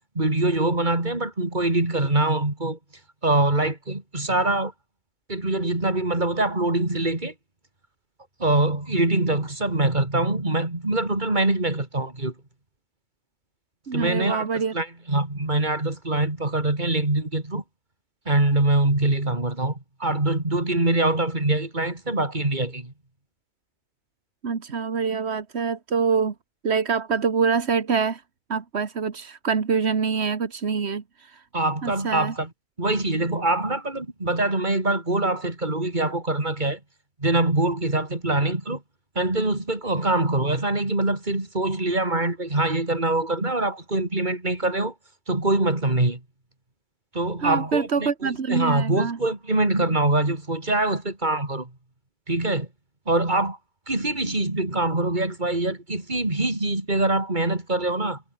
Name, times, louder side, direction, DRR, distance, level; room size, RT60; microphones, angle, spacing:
voice 1, 0.2-2.8 3.2-4.7 5.3-7.3 8.4-12.3 13.9-14.5 14.7-17.6 18.3-22.9 31.5-32.5 32.8-36.8 37.2-38.8 39.2-44.9 45.3-46.2 47.1-51.7 52.3-52.7 53.1-53.6 53.9-58.2, right 2 dB, 45° right, 4.1 m, -24 dB
voice 2, 13.9-14.7 24.4-26.3 26.6-28.2 28.5-31.4 31.8-32.3 47.4-49.2, right 5 dB, 90° right, 1.8 m, -25 dB
omnidirectional pair, 1.1 m